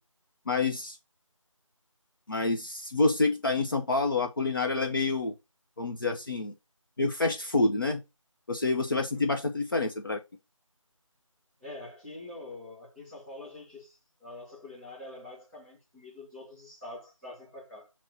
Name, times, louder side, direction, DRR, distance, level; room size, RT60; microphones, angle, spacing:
voice 1, 0.5-1.0 2.3-5.3 5.8-6.5 7.0-8.0 8.5-10.2, left 3 dB, 40° left, 0.7 m, -27 dB
voice 2, 11.6-17.9, left 2 dB, ahead, 2.2 m, -45 dB
7.6 x 3.0 x 4.1 m
figure-of-eight pair, 165°, 17 cm